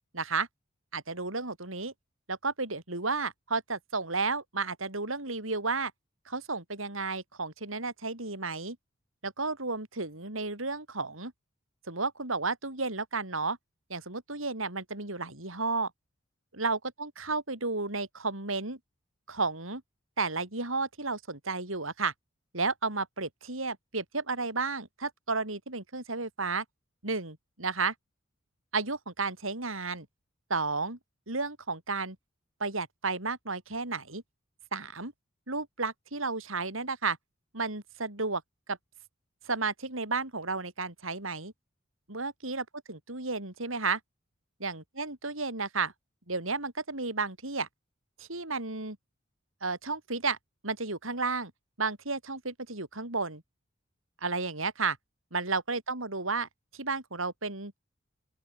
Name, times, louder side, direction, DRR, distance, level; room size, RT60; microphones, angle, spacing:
voice 1, 0.1-0.5 0.9-1.9 2.3-5.9 6.3-8.8 9.2-11.3 11.9-13.6 13.9-15.9 16.5-18.8 19.3-19.8 20.2-22.1 22.5-26.6 27.0-27.9 28.7-30.1 30.5-31.0 31.3-32.2 32.6-34.2 34.7-35.1 35.5-37.2 37.5-38.4 38.7-38.8 39.4-41.5 42.1-44.0 44.6-45.9 46.3-47.7 48.2-49.0 49.6-50.4 50.6-51.5 51.8-53.4 54.2-55.0 55.3-57.7, right 3 dB, 85° right, 6.4 m, -32 dB
open air
head